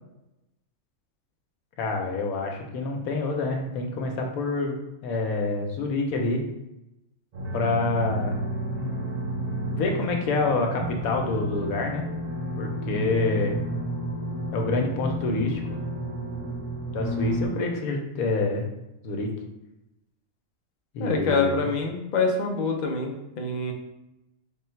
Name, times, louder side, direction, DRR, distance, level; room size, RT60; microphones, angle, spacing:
voice 1, 1.8-4.8 5.0-6.4 7.5-8.4 9.7-12.0 12.6-13.6 14.5-15.8 16.9-18.7 19.0-19.3 20.9-21.6, left 3 dB, 90° left, 2 dB, 1.1 m, -27 dB
sound 1, 7.3-17.5, right 1 dB, 35° right, 0.8 m, -31 dB
voice 2, 21.0-23.7, left 3 dB, 60° left, 2 dB, 0.4 m, -26 dB
3.4 x 2.3 x 4.4 m, 0.92 s
omnidirectional pair, 1.5 m